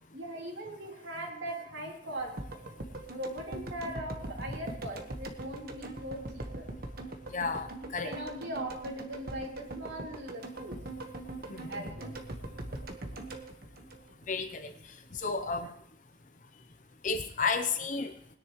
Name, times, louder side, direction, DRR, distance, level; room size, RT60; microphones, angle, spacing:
voice 1, 0.1-2.4 3.1-6.7 8.0-10.8 11.7-12.1, right 1 dB, 85° right, 0 dB, 2.9 m, -40 dB
sound 1, 2.4-14.6 14.8-14.9, right 2 dB, 55° right, 1.3 m, -42 dB
voice 2, 7.3-8.1 11.5-11.9 14.3-14.7 15.1-15.7 17.0-18.1, left 4 dB, 45° left, 8 dB, 0.7 m, -32 dB
20.5 x 10.0 x 3.1 m, 0.71 s
head